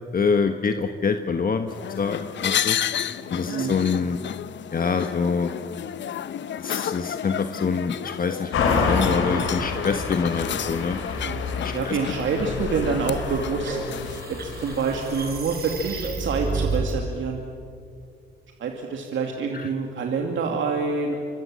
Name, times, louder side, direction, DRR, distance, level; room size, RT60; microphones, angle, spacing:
voice 1, 0.1-2.8 3.3-4.2 4.7-5.5 6.6-11.0 11.6-12.0 19.5-19.7, left 5 dB, 45° left, 7 dB, 1.4 m, -25 dB
sound 1, 1.7-14.2, left 9 dB, 65° left, 0.9 m, -31 dB
voice 2, 3.5-3.8 11.2-11.4 11.7-13.8 14.3-17.4 18.6-21.2, right 5 dB, 70° right, 2 dB, 2.6 m, -27 dB
sound 2, 8.5-15.4, left 4 dB, 80° left, 4.5 m, -28 dB
sound 3, 13.2-16.9, right 3 dB, 50° right, 4.7 m, -31 dB
26.0 x 26.0 x 7.6 m, 2.3 s
cardioid pair, 75°, 21 cm